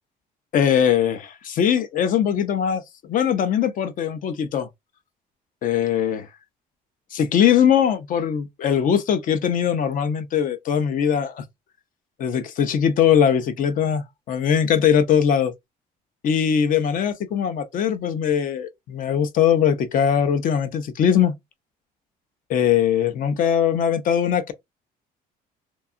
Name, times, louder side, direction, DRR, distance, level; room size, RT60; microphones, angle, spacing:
voice 1, 0.5-4.7 5.6-6.3 7.1-11.4 12.2-15.5 16.2-21.3 22.5-24.5, left 8 dB, 55° left, 0.5 m, -21 dB
2.7 x 2.3 x 2.4 m
cardioid pair, 110°, 17 cm